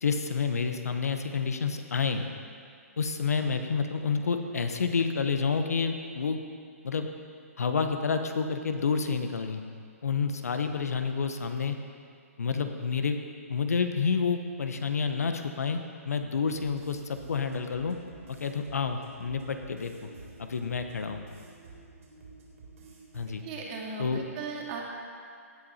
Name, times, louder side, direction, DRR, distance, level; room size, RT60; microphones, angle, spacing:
voice 1, 0.0-2.3 3.0-6.4 6.8-7.1 7.6-9.6 10.0-11.8 12.4-13.2 13.5-18.0 18.3-20.1 20.4-21.2 23.1-23.4 24.0-24.2, left 5 dB, 75° left, 7 dB, 1.1 m, -29 dB
sound 1, 16.4-23.3, right 3 dB, 65° right, 3.5 m, -50 dB
voice 2, 23.4-24.8, right 4 dB, 35° right, -2 dB, 2.5 m, -37 dB
16.5 x 8.2 x 4.3 m, 2.2 s
hypercardioid pair, 135°, 8 cm